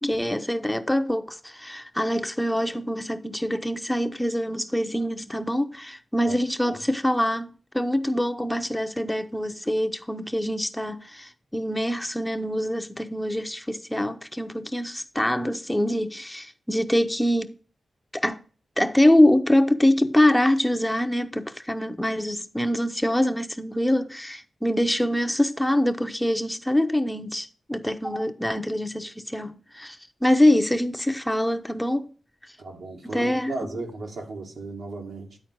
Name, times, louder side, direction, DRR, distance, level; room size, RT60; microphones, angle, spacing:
voice 1, 0.0-17.5 18.1-18.4 18.8-32.1 33.0-33.5, left 1 dB, 5° left, 0.8 m, -24 dB
voice 2, 32.6-35.4, right 3 dB, 75° right, 2.1 m, -36 dB
10.5 x 4.2 x 6.2 m
cardioid pair, 55°, 0 cm